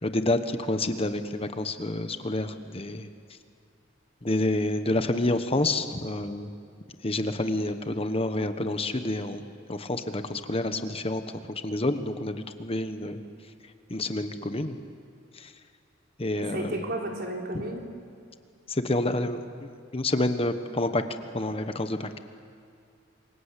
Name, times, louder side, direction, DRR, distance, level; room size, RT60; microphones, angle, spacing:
voice 1, 0.0-3.1 4.2-6.5 7.0-9.4 9.7-11.2 11.5-13.2 13.9-14.8 15.4-15.5 16.2-16.7 18.7-21.0 21.3-22.1, left 2 dB, 30° left, 8 dB, 1.1 m, -28 dB
voice 2, 16.3-17.9, right 1 dB, 55° right, 1 dB, 3.9 m, -33 dB
28.0 x 24.0 x 8.3 m, 2.3 s
head